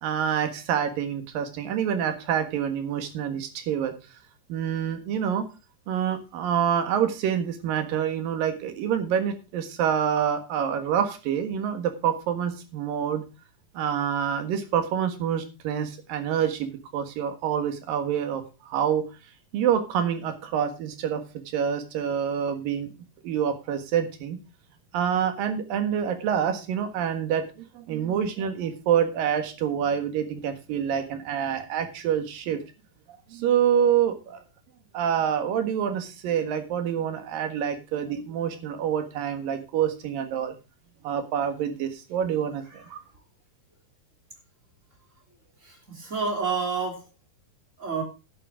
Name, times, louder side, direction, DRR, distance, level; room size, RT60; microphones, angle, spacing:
voice 1, 0.0-3.9 4.5-5.5 5.9-13.2 13.7-19.0 19.5-22.9 23.2-24.4 24.9-27.5 27.7-32.6 33.3-34.4 34.9-40.5 41.0-43.0, right 8 dB, 90° right, 8 dB, 3.4 m, -27 dB
voice 2, 45.6-47.1 47.8-48.0, right 5 dB, 20° right, 2 dB, 3.4 m, -29 dB
11.5 x 9.0 x 4.8 m, 0.30 s
omnidirectional pair, 3.9 m